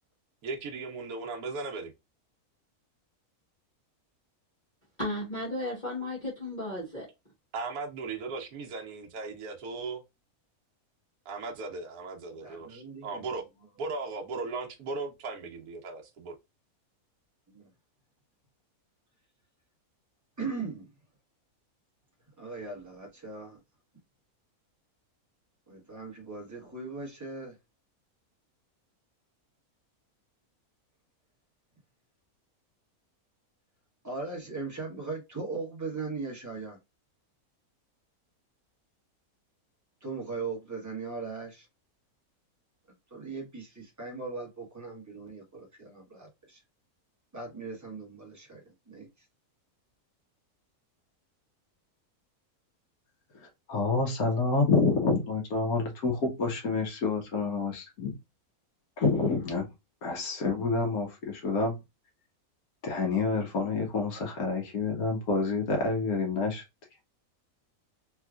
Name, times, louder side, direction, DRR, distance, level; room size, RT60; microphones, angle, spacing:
voice 1, 0.4-1.9 7.5-10.0 11.2-13.4 13.8-16.3, right 3 dB, 75° right, 1.3 m, -37 dB
voice 2, 5.0-7.1, left 1 dB, 30° left, 1.5 m, -34 dB
voice 3, 12.4-13.3 17.5-17.7 20.4-20.9 22.4-23.6 25.7-27.6 34.0-36.8 40.0-41.7 43.1-46.6 47.3-49.2, right 4 dB, 15° right, 1.1 m, -39 dB
voice 4, 53.7-58.1 59.0-59.7 60.0-61.7 62.8-66.6, left 4 dB, 80° left, 1.4 m, -28 dB
3.4 x 3.1 x 2.3 m
omnidirectional pair, 1.6 m